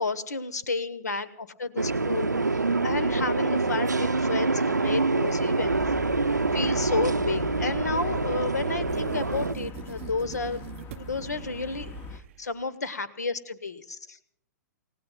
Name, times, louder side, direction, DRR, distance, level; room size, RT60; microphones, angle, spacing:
voice 1, 0.0-5.8 6.5-10.6 10.9-14.2, left 4 dB, 70° left, 15 dB, 1.2 m, -32 dB
sound 1, 1.8-9.5, right 3 dB, 85° right, 0.6 m, -26 dB
sound 2, 5.6-12.2, left 6 dB, 25° left, 1.0 m, -41 dB
sound 3, 8.9-12.6, right 13 dB, 45° right, 0.5 m, -42 dB
29.0 x 17.5 x 2.4 m, 0.66 s
figure-of-eight pair, 110°, 9 cm